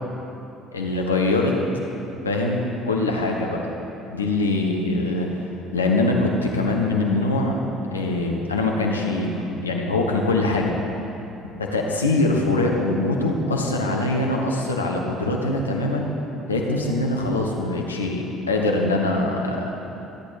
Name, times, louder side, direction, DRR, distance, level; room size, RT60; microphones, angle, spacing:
voice 1, 0.7-1.5 2.2-3.7 4.1-5.3 5.7-6.2 6.4-7.6 7.9-9.4 9.6-10.7 11.7-16.1 16.5-19.7, left 2 dB, 90° left, 0 dB, 1.1 m, -23 dB
14.0 x 8.4 x 5.2 m, 3.0 s
hypercardioid pair, 55°, 0 cm